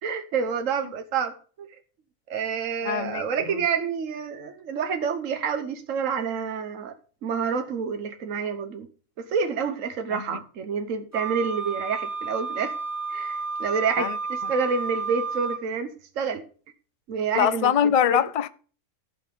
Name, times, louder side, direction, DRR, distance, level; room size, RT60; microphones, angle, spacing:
voice 1, 0.0-1.7 2.3-6.9 7.2-8.9 9.2-12.8 13.1-16.4 17.1-17.7 18.1-18.2, right 6 dB, 70° right, 1.4 m, -28 dB
voice 2, 2.8-3.6 10.1-10.4 14.0-14.2 17.3-18.5, left 9 dB, 65° left, 0.3 m, -24 dB
Wind instrument woodwind instrument, 11.1-15.6, right 4 dB, 10° left, 2.9 m, -31 dB
14.5 x 5.9 x 5.2 m
omnidirectional pair, 1.4 m